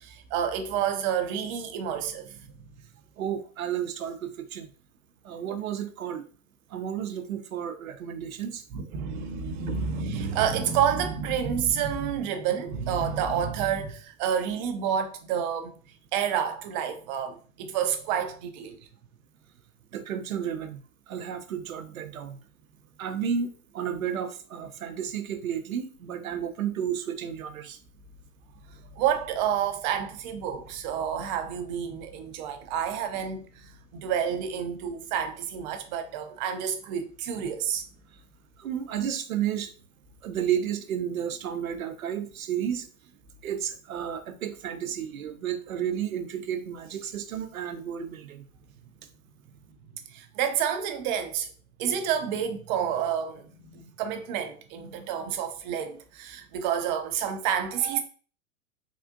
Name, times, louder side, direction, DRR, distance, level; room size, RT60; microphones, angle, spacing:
voice 1, 0.0-2.4 8.7-15.8 16.1-18.8 29.0-37.8 49.9-51.5 51.8-58.0, right 8 dB, 35° right, 0.5 m, -29 dB
voice 2, 3.2-4.7 5.2-6.3 6.7-8.6 19.9-22.4 23.0-27.8 38.1-38.2 38.6-39.7 40.2-42.9 43.4-48.5, right 9 dB, 80° right, 0.6 m, -32 dB
3.5 x 2.4 x 2.5 m
hypercardioid pair, 105°, 41 cm